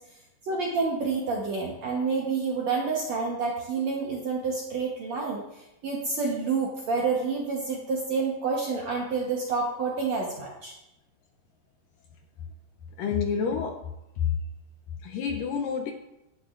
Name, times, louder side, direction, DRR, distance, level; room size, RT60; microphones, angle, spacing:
voice 1, 0.4-5.4 5.8-10.7, right 4 dB, 65° right, -2 dB, 1.8 m, -28 dB
voice 2, 13.0-13.8 14.2-14.3 15.0-15.9, left 6 dB, 75° left, 3 dB, 2.1 m, -28 dB
14.0 x 11.5 x 2.6 m, 0.91 s
omnidirectional pair, 4.6 m